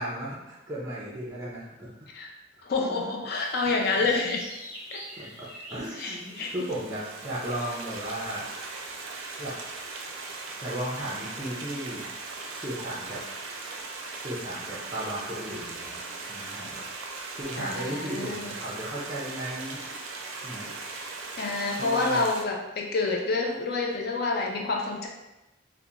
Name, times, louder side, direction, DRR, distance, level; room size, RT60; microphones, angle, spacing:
voice 1, 0.0-1.9 2.9-3.0 3.7-3.8 5.2-8.5 9.4-9.5 10.6-12.1 12.6-13.2 14.1-16.0 16.3-16.8 17.3-19.8 20.4-20.7 21.8-22.2, right 1 dB, 15° right, -6 dB, 0.4 m, -35 dB
voice 2, 2.6-4.5 4.9-5.0 6.0-6.5 17.5-18.5 21.4-25.1, left 3 dB, 50° left, 0 dB, 0.3 m, -28 dB
sound 1, 3.3-8.4, equal, 10° left, 0.8 m, -46 dB
Stream, 6.1-22.4, right 3 dB, 85° right, 0.4 m, -39 dB
2.8 x 2.1 x 2.4 m, 0.99 s
head